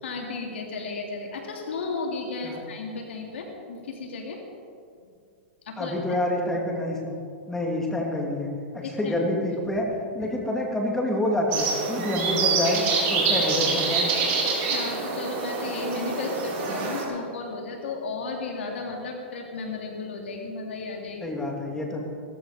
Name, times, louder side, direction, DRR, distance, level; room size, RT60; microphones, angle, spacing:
voice 1, 0.0-4.4 5.6-6.2 8.8-9.3 10.2-10.3 14.7-21.3, left 3 dB, 80° left, 1 dB, 3.0 m, -34 dB
voice 2, 5.8-7.2 7.5-8.5 8.7-9.9 10.1-12.8 13.1-14.1 21.2-22.0, left 1 dB, 5° left, 0 dB, 2.6 m, -27 dB
sound 1, 11.5-17.0, right 4 dB, 40° right, 4.2 m, -26 dB
17.0 x 14.5 x 5.1 m, 2.3 s
hypercardioid pair, 140°, 6 cm